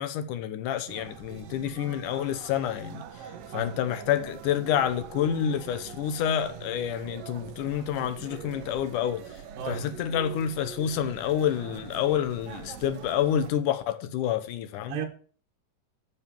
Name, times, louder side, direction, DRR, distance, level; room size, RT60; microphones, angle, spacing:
voice 1, 0.0-3.0 3.5-9.2 9.7-15.0, left 9 dB, 75° left, 2.4 m, -28 dB
sound 1, 0.9-13.5, right 8 dB, 65° right, 2.0 m, -44 dB
voice 2, 3.5-4.1 9.6-10.0 14.9-15.1, right 7 dB, 90° right, 3.1 m, -35 dB
12.0 x 4.7 x 7.5 m
omnidirectional pair, 3.9 m